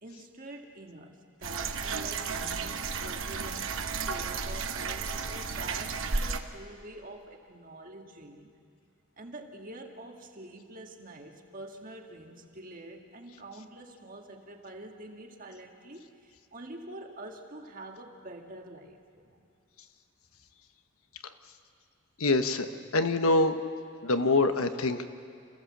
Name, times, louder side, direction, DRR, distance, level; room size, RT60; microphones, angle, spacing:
voice 1, 0.0-8.5 9.2-19.5, right 1 dB, 40° right, 3 dB, 1.7 m, -46 dB
sound 1, 1.4-6.4, right 5 dB, 60° right, 1.0 m, -33 dB
voice 2, 22.2-23.6 24.0-25.1, left 2 dB, 75° left, 8 dB, 1.1 m, -25 dB
28.0 x 15.5 x 7.4 m, 2.3 s
head